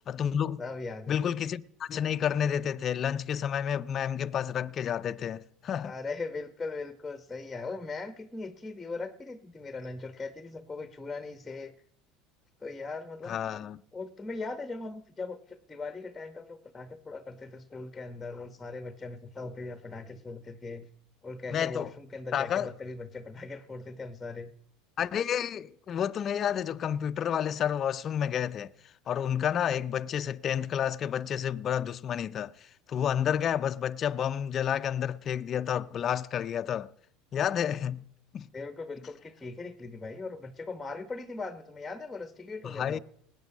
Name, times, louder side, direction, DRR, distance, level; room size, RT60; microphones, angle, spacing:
voice 1, 0.1-0.6 1.1-5.9 13.3-13.8 21.5-21.9 22.3-22.7 25.0-28.7 29.1-32.5 32.9-36.9 37.3-38.0 38.3-38.5 42.6-43.0, left 9 dB, 40° left, 0.5 m, -30 dB
voice 2, 0.6-1.3 5.8-11.7 12.6-13.4 13.9-20.9 21.2-24.5 38.5-43.0, left 3 dB, 10° left, 1.0 m, -39 dB
18.5 x 8.9 x 5.4 m
supercardioid pair, 105°, 0 cm